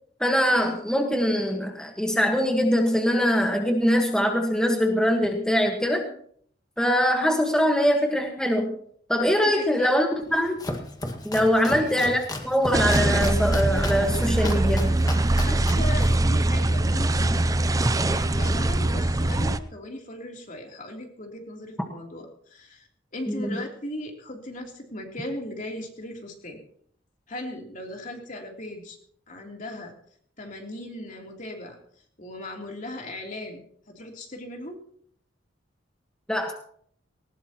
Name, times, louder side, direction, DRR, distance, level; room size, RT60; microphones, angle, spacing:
voice 1, 0.2-6.1 6.8-8.7 9.1-10.6 11.2-14.9 23.3-23.6 36.3-36.5, equal, 5° left, 2 dB, 1.5 m, -23 dB
voice 2, 9.4-9.9 11.6-11.9 15.3-26.6 27.3-29.0 29.3-29.9 30.4-31.7 32.2-34.8, left 1 dB, 45° left, 1 dB, 3.3 m, -38 dB
Domestic sounds home sounds, 10.2-17.2, left 1 dB, 20° left, 1.8 m, -35 dB
sound 1, 12.7-19.6, right 2 dB, 20° right, 0.5 m, -22 dB
19.5 x 19.0 x 3.0 m, 0.62 s
head